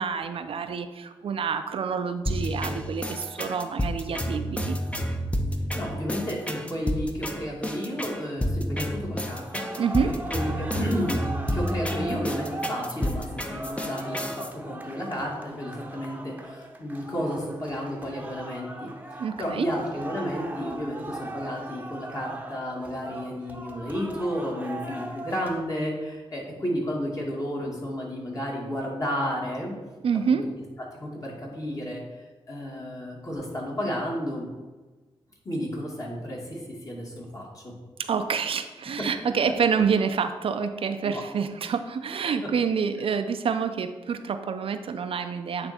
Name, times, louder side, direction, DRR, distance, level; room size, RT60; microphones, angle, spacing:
voice 1, 0.0-4.8 9.8-10.1 19.2-19.7 30.0-30.5 38.0-45.7, right 6 dB, 65° right, 8 dB, 0.5 m, -27 dB
sound 1, 2.3-14.5, equal, 10° left, 0.7 m, -30 dB
voice 2, 5.7-18.9 19.4-29.7 30.3-30.5 30.9-34.5 35.4-37.7 39.0-39.1 41.0-41.2, equal, 35° left, -3 dB, 2.2 m, -32 dB
sound 2, 9.3-25.6, right 2 dB, 15° right, 0.8 m, -39 dB
8.7 x 3.3 x 4.3 m, 1.2 s
cardioid pair, 65°, 10 cm